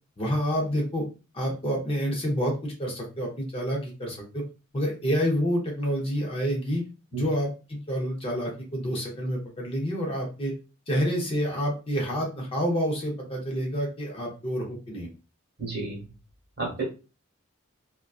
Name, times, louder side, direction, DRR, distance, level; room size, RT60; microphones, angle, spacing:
voice 1, 0.2-1.0 1.3-4.4 4.7-6.8 7.1-10.5 10.9-15.1, equal, 25° left, -1 dB, 0.6 m, -28 dB
voice 2, 15.6-16.0 16.6-16.8, right 4 dB, 45° right, -1 dB, 1.0 m, -31 dB
2.5 x 2.2 x 2.3 m, 0.32 s
head